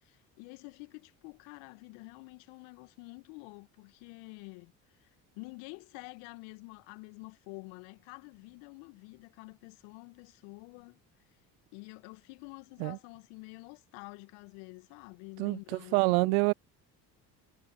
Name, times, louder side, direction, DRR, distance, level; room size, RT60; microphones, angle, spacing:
voice 1, 0.0-5.1 5.4-11.0 11.7-16.4, left 29 dB, 65° left, 2.3 m, -48 dB
voice 2, 15.4-16.5, right 33 dB, 65° right, 0.5 m, -27 dB
hypercardioid pair, 55°, 49 cm